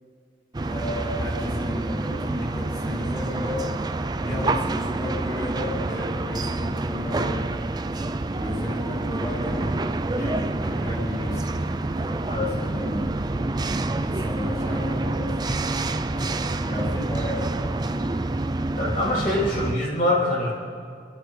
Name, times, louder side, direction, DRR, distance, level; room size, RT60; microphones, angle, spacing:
sound 1, 0.5-19.8, right 2 dB, 25° right, 0.4 m, -27 dB
voice 1, 0.6-3.6 4.2-7.5 8.4-13.0 14.0-15.3 16.1-17.9, left 1 dB, 20° left, -5 dB, 3.4 m, -33 dB
voice 2, 18.8-20.5, left 1 dB, 45° left, -5 dB, 3.5 m, -24 dB
29.0 x 11.5 x 3.3 m, 2.3 s
head